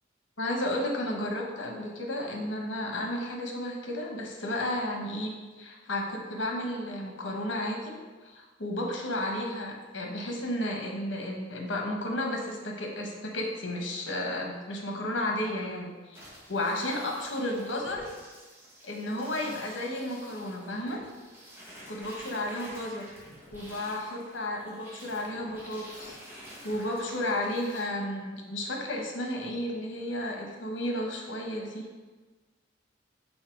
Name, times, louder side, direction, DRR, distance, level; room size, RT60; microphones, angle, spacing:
voice 1, 0.4-7.9 8.2-16.2 16.5-18.1 18.8-21.0 21.9-23.0 23.5-31.9, left 1 dB, 75° left, 1 dB, 1.2 m, -33 dB
sound 1, 16.1-27.8, equal, 10° right, 1.9 m, -49 dB
5.7 x 4.4 x 4.6 m, 1.3 s
head